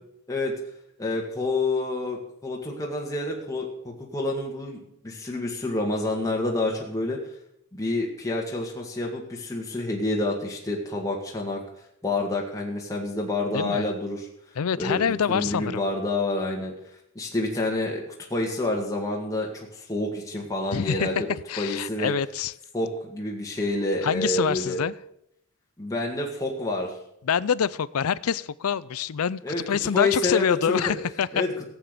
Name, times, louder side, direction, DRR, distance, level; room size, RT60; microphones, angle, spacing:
voice 1, 1.0-7.2 7.7-11.6 12.0-14.3 14.8-15.0 15.3-16.7 17.2-18.0 18.3-21.3 21.6-22.1 22.7-24.8 25.8-26.9 29.4-29.6 29.9-31.0 31.3-31.5, left 2 dB, 15° left, -1 dB, 1.8 m, -28 dB
voice 2, 13.5-14.0 14.6-15.8 20.7-21.1 21.5-22.5 24.0-24.9 27.2-29.4 29.7-31.3, left 7 dB, 75° left, 19 dB, 0.5 m, -26 dB
14.5 x 8.1 x 6.7 m, 0.76 s
head